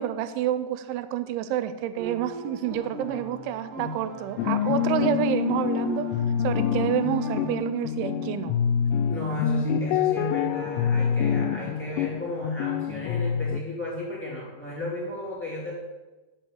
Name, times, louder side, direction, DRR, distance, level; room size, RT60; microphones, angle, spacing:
voice 1, 0.0-6.1 6.4-8.5, right 11 dB, 85° right, 12 dB, 2.9 m, -28 dB
sound 1, 2.0-7.6, right 1 dB, 65° right, 2.2 m, -39 dB
sound 2, 4.4-13.6, left 8 dB, 90° left, 3.0 m, -26 dB
voice 2, 9.1-15.7, left 1 dB, 5° left, -5 dB, 1.4 m, -34 dB
6.8 x 6.3 x 7.5 m, 1.1 s
omnidirectional pair, 5.5 m